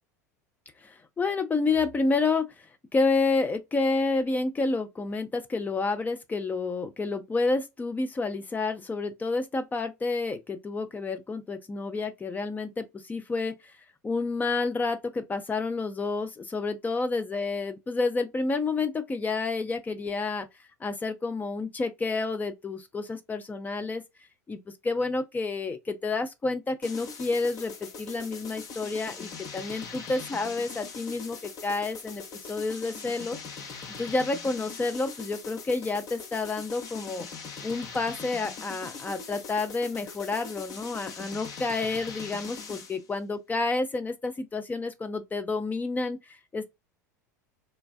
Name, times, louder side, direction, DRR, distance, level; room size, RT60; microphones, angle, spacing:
voice 1, 0.8-2.5 2.9-13.5 14.0-20.5 20.8-24.0 24.5-32.2 32.5-33.4 34.0-37.3 37.6-46.7, left 3 dB, 20° left, 0.5 m, -29 dB
sound 1, 26.8-43.0, left 5 dB, 40° left, 0.8 m, -41 dB
3.3 x 2.3 x 2.2 m
figure-of-eight pair, 80°, 9 cm